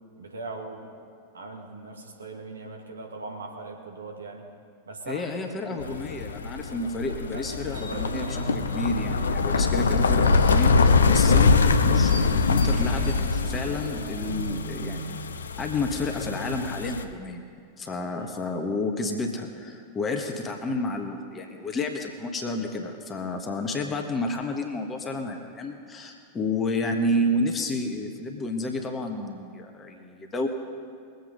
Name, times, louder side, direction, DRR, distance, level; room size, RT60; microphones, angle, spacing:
voice 1, 0.2-0.9 1.3-4.5 4.9-5.3 5.6-6.4 7.0-8.4 18.1-18.4, right 3 dB, 70° right, 0 dB, 2.1 m, -40 dB
voice 2, 5.1-15.2 15.6-17.4 17.8-30.5, left 2 dB, 20° left, 3 dB, 1.5 m, -30 dB
sound 1, 5.8-17.0, left 4 dB, 70° left, 0.7 m, -23 dB
sound 2, 7.7-15.2, right 2 dB, 45° right, 2.8 m, -36 dB
21.5 x 8.2 x 5.3 m, 2.3 s
figure-of-eight pair, 90°, 0 cm